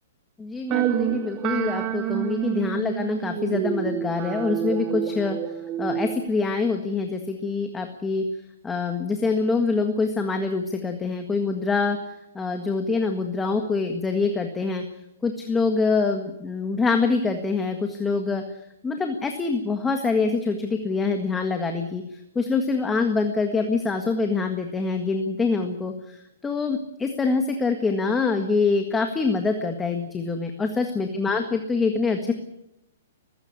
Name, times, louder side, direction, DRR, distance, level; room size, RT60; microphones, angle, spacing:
voice 1, 0.4-5.4 5.8-8.2 8.6-12.0 12.4-14.8 15.2-18.4 18.8-22.0 22.4-32.3, left 4 dB, 10° left, 5 dB, 1.7 m, -25 dB
sound 1, 0.7-6.3, right 10 dB, 30° right, 1.8 m, -28 dB
20.0 x 15.5 x 9.7 m, 0.83 s
hypercardioid pair, 155°, 0 cm